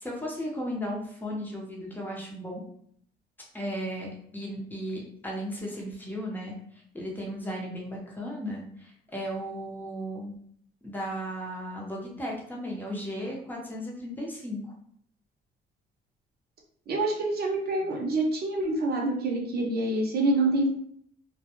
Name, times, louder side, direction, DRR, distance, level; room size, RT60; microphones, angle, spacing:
voice 1, 0.0-2.6 3.5-10.3 10.8-14.7, equal, 10° left, -3 dB, 0.8 m, -35 dB
voice 2, 16.9-20.7, right 2 dB, 50° right, -1 dB, 0.8 m, -26 dB
2.2 x 2.2 x 2.9 m, 0.65 s
cardioid pair, 90°, 20 cm